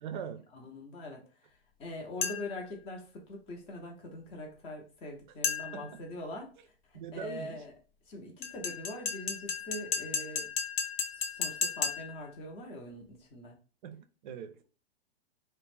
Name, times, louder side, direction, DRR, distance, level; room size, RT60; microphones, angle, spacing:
voice 1, 0.0-0.5 5.7-5.9 6.9-7.6 13.8-14.6, right 8 dB, 50° right, 0.4 m, -41 dB
voice 2, 0.5-6.5 6.8-7.7 8.0-10.5 11.1-13.6, left 1 dB, 20° left, 0.5 m, -43 dB
sound 1, 2.2-2.7 5.4-5.9 8.4-12.3, left 6 dB, 65° left, 0.6 m, -34 dB
2.4 x 2.0 x 3.2 m
figure-of-eight pair, 110°, 32 cm